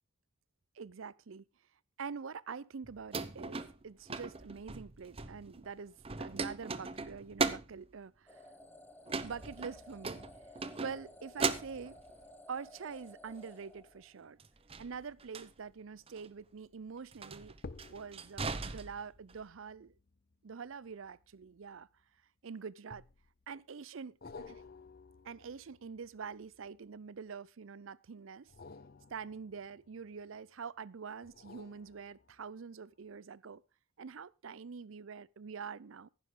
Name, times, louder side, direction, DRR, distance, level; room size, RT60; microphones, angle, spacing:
voice 1, 0.7-1.5 2.0-8.5 9.2-10.2 10.8-12.0 12.5-14.4 14.8-17.6 17.9-19.9 20.4-21.9 22.4-23.0 23.5-24.6 25.2-28.5 29.1-33.6 34.0-36.1, right 5 dB, 75° right, 0.5 m, -45 dB
sound 1, 2.8-5.7 6.0-7.9 9.1-11.1 11.4-12.2 14.4-15.5 16.1-16.3 17.1-19.4, right 4 dB, 25° right, 0.7 m, -38 dB
sound 2, 8.3-14.4, left 1 dB, 10° left, 1.0 m, -56 dB
sound 3, 16.3-16.7 17.5-22.2 22.9-23.5 24.2-27.2 28.4-30.5 31.2-32.6 33.1-33.2, left 3 dB, 45° left, 0.6 m, -55 dB
16.0 x 9.8 x 3.7 m
head